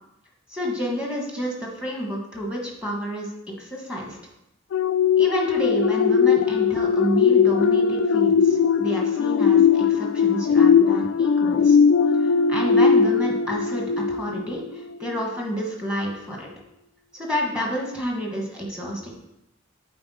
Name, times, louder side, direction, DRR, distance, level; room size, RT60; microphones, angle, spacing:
voice 1, 0.5-3.3 3.6-4.2 5.2-11.8 12.2-16.5 17.1-19.1, equal, 5° right, -1 dB, 1.2 m, -29 dB
sound 1, 4.7-14.6 15.0-15.2, left 6 dB, 90° left, 0.3 m, -19 dB
7.8 x 4.4 x 4.1 m, 0.86 s
head